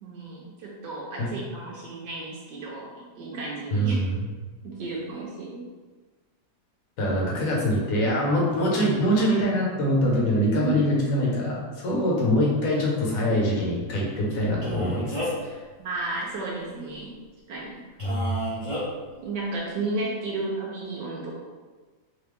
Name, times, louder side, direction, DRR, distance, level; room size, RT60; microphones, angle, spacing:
voice 1, 0.0-4.0 4.6-5.6 7.1-7.2 10.6-10.8 15.8-17.2 17.5-17.8 19.2-21.4, right 3 dB, 75° right, -4 dB, 1.3 m, -33 dB
voice 2, 3.7-4.2 7.0-15.2 15.4-15.6 18.0-18.4, equal, 55° left, -3 dB, 1.3 m, -24 dB
Male speech man speaking, 14.6-15.5 18.0-18.8, equal, 25° right, 0.8 m, -31 dB
3.4 x 3.3 x 3.3 m, 1.3 s
omnidirectional pair, 1.9 m